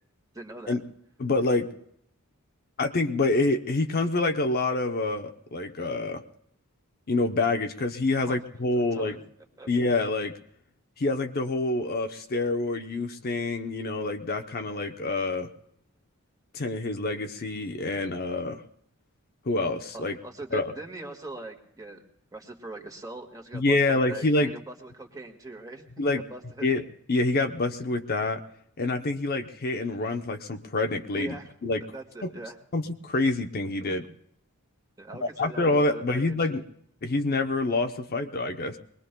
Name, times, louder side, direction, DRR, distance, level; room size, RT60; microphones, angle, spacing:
voice 1, 0.3-0.8 8.2-8.4 8.7-9.2 9.6-9.7 19.9-22.0 22.3-26.7 31.1-31.5 31.9-32.6 33.8-34.1 35.0-36.5, right 2 dB, 15° right, 2 dB, 1.7 m, -41 dB
voice 2, 1.2-1.7 2.8-6.2 7.1-9.2 9.7-10.3 11.0-15.5 16.5-18.6 19.5-20.2 20.5-20.7 23.5-24.5 26.0-26.2 26.6-28.4 28.8-31.4 31.6-31.8 32.2-32.3 32.7-34.1 35.2-36.6 37.0-38.8, left 2 dB, 45° left, 6 dB, 0.7 m, -27 dB
23.5 x 20.5 x 2.2 m, 0.70 s
head